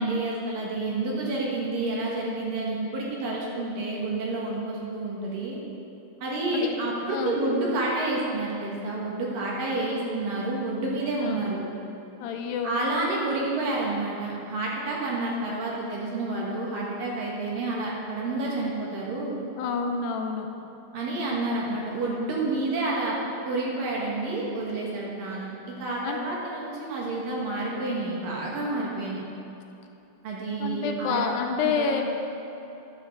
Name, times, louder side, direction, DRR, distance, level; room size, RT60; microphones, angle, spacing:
voice 1, 0.0-5.6 6.2-11.6 12.6-19.4 20.9-23.2 23.4-29.2 30.2-31.2 31.7-32.0, right 2 dB, 65° right, -4 dB, 2.9 m, -29 dB
voice 2, 12.2-12.7 19.6-20.5 26.0-26.2 30.6-32.0, left 6 dB, 85° left, 3 dB, 2.7 m, -28 dB
11.0 x 6.6 x 6.8 m, 2.8 s
omnidirectional pair, 4.9 m